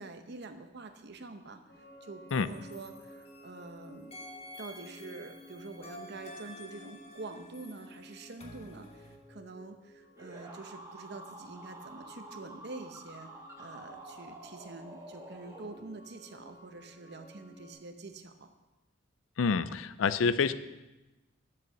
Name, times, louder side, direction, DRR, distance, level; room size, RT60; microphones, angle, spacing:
voice 1, 0.0-1.6 2.0-4.1 4.6-13.3 13.6-18.5, right 3 dB, 60° right, 7 dB, 0.8 m, -46 dB
sound 1, 1.7-17.7, left 1 dB, 60° left, 2.6 m, -55 dB
sound 2, 2.3-3.7 4.1-9.2, left 1 dB, 30° left, 1.3 m, -50 dB
sound 3, 10.2-16.2, right 1 dB, 15° right, 1.5 m, -49 dB
voice 2, 19.4-20.5, left 5 dB, 90° left, 14 dB, 0.5 m, -27 dB
7.8 x 7.7 x 6.5 m, 1.1 s
head